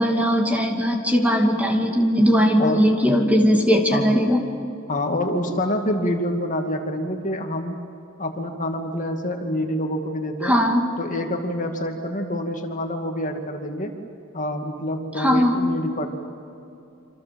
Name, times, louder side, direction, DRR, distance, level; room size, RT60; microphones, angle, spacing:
voice 1, 0.0-4.4 10.4-10.8 15.2-15.5, equal, 5° right, 2 dB, 2.5 m, -19 dB
voice 2, 4.9-7.7 8.2-10.6 11.0-13.9 14.3-16.1, left 1 dB, 40° left, 3 dB, 2.4 m, -26 dB
28.0 x 26.5 x 7.7 m, 2.7 s
head